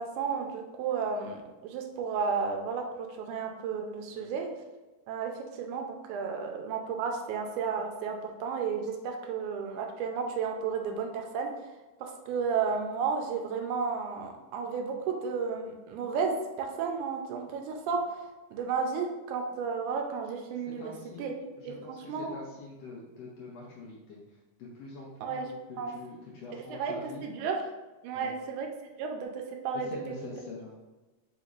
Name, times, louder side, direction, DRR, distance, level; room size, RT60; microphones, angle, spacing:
voice 1, 0.0-4.5 5.1-11.5 12.0-18.3 18.5-20.8 21.2-21.3 21.7-22.4 25.2-25.5 25.8-25.9 26.7-26.9 27.2-27.6 28.0-28.7 29.0-30.1, right 5 dB, 80° right, 3 dB, 2.0 m, -33 dB
voice 2, 20.8-21.3 21.6-24.2 24.6-27.2 28.1-28.3 29.8-30.7, left 3 dB, 85° left, -4 dB, 1.5 m, -45 dB
5.1 x 3.1 x 2.4 m, 1.2 s
omnidirectional pair, 3.6 m